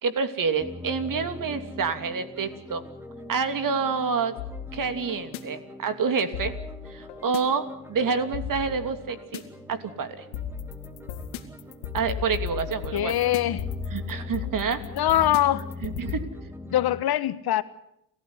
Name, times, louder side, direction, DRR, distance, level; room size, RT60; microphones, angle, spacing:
voice 1, 0.0-2.8 3.3-4.3 4.7-6.5 6.9-9.4 9.7-10.2 11.9-13.1 13.9-14.8 15.8-16.2, right 5 dB, 45° right, 2.9 m, -28 dB
sound 1, 0.6-17.0, left 2 dB, 5° right, 2.6 m, -41 dB
sound 2, 4.4-5.4 6.3-7.4 8.3-9.4 10.3-16.2, left 8 dB, 90° left, 2.5 m, -35 dB
voice 2, 12.9-13.6 14.9-15.7 16.7-17.6, left 12 dB, 55° left, 1.4 m, -23 dB
29.0 x 15.0 x 9.7 m
supercardioid pair, 80°, 44 cm